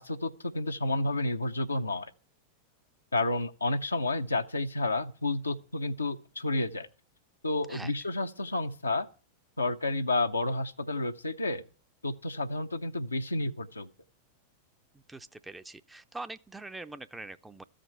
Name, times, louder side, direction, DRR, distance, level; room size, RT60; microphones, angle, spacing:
voice 1, 0.0-2.1 3.1-6.9 7.4-9.1 9.6-11.6 12.0-13.9, left 2 dB, 80° left, 0.7 m, -30 dB
voice 2, 14.9-17.6, right 2 dB, 10° right, 0.5 m, -43 dB
14.0 x 5.1 x 8.8 m
figure-of-eight pair, 90°, 0 cm